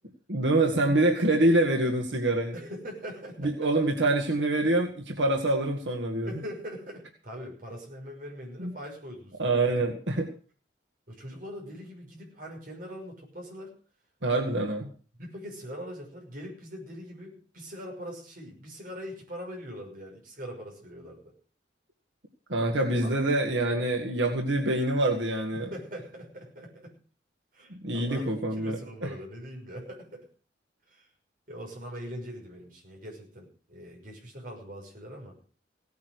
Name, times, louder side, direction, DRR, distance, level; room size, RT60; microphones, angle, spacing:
voice 1, 0.3-2.5 3.4-6.3 8.6-8.7 9.4-10.3 14.2-14.9 22.5-25.7 27.7-29.1, right 2 dB, 90° right, 2 dB, 2.0 m, -26 dB
voice 2, 2.5-3.7 6.2-9.6 11.1-13.7 14.4-14.9 15.2-21.3 22.8-23.2 25.5-26.9 27.5-30.3 30.9-31.1 31.5-35.4, equal, 50° right, 0 dB, 6.1 m, -42 dB
17.0 x 9.4 x 6.5 m, 0.42 s
head